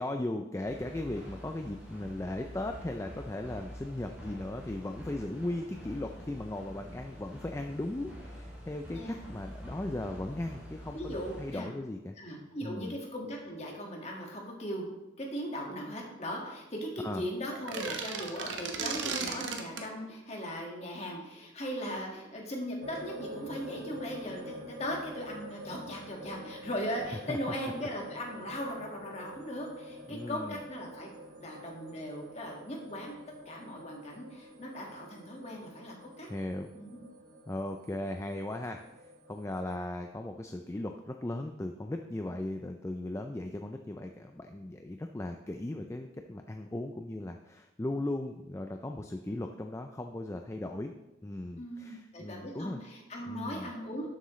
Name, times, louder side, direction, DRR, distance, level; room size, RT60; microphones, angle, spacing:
voice 1, 0.0-12.2 12.6-13.0 17.0-17.2 27.3-27.4 30.1-30.6 36.3-36.7 37.5-38.8 39.3-50.9 51.2-52.8 53.3-53.7, left 1 dB, 15° left, 5 dB, 0.4 m, -37 dB
sound 1, 0.6-11.6, equal, 5° right, 2.7 m, -46 dB
voice 2, 8.9-9.2 10.9-11.7 12.2-14.9 15.2-31.1 31.4-33.2 33.5-36.3 36.7-37.0 51.6-54.1, equal, 35° left, 0 dB, 1.8 m, -39 dB
sound 2, 17.5-19.9, right 4 dB, 65° right, 1.0 m, -35 dB
sound 3, 22.8-39.8, right 1 dB, 45° right, 1.3 m, -48 dB
11.5 x 7.7 x 3.2 m, 0.97 s
head